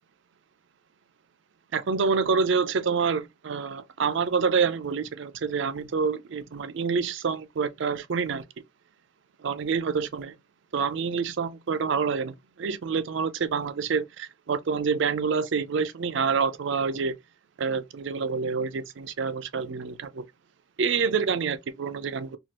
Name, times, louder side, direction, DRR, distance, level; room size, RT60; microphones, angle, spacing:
voice 1, 1.7-8.4 9.4-10.3 10.7-17.2 17.6-20.2 20.8-22.4, right 5 dB, 60° right, 0.4 m, -27 dB
2.9 x 2.4 x 2.8 m
head